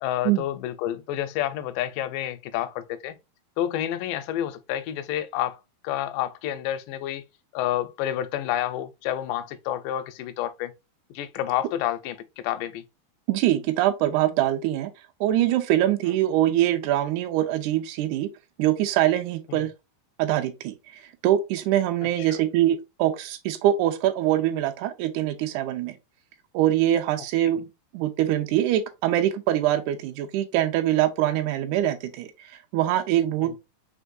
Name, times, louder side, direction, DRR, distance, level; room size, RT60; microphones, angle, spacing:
voice 1, 0.0-3.2 3.6-5.6 5.8-7.2 7.5-10.7 11.2-12.8 19.6-19.7 22.2-22.3 33.4-33.6, left 12 dB, 80° left, 2.0 m, -29 dB
voice 2, 13.3-14.9 15.2-18.3 18.6-19.7 20.2-26.0 26.5-27.7 27.9-33.6, right 13 dB, 85° right, 1.8 m, -23 dB
5.2 x 3.4 x 2.6 m
omnidirectional pair, 4.1 m